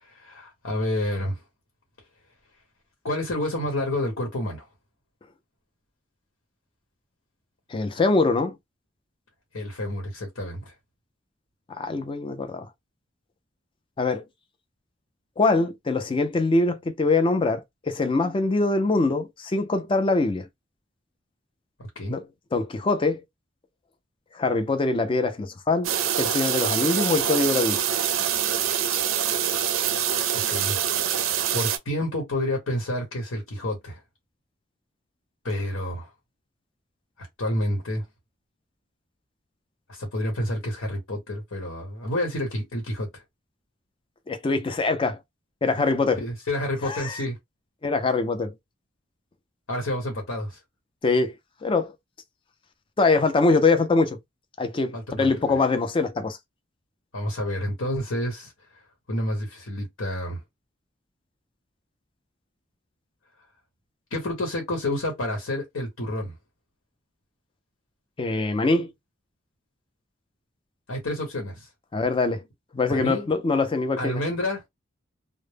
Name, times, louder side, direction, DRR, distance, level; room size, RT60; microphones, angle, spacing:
voice 1, 0.0-1.4 3.0-4.6 9.5-10.7 21.8-22.2 30.3-30.8 31.5-34.0 35.4-36.1 37.2-38.0 39.9-43.2 46.2-47.4 49.7-50.6 54.9-55.6 57.1-58.5 59.1-60.4 64.1-66.3 70.9-71.7 72.9-73.3 74.0-74.7, left 1 dB, 85° left, 1.0 m, -29 dB
voice 2, 7.7-8.5 11.8-12.7 14.0-14.2 15.4-20.5 22.1-22.2 22.5-23.2 24.3-25.9 26.2-27.8 44.3-45.2 45.6-46.2 46.8-47.2 47.8-48.5 51.0-51.3 51.6-51.9 53.0-54.2 54.6-56.4 68.2-68.9 71.9-72.4 72.7-74.2, left 3 dB, 25° left, 0.4 m, -23 dB
sound 1, 25.8-31.8, right 9 dB, 80° right, 0.4 m, -25 dB
2.1 x 2.0 x 3.2 m
head